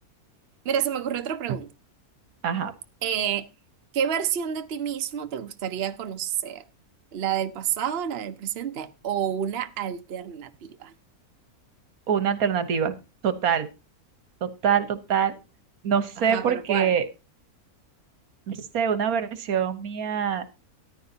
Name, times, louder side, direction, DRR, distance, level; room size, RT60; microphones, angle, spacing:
voice 1, 0.6-1.7 3.0-3.5 3.9-6.6 7.1-10.9 16.2-16.9, right 9 dB, 50° right, 0.8 m, -29 dB
voice 2, 12.1-13.0 13.2-13.7 14.4-15.3 15.8-17.1 18.5-20.5, right 7 dB, 70° right, 1.5 m, -24 dB
14.0 x 10.0 x 2.8 m
omnidirectional pair, 1.6 m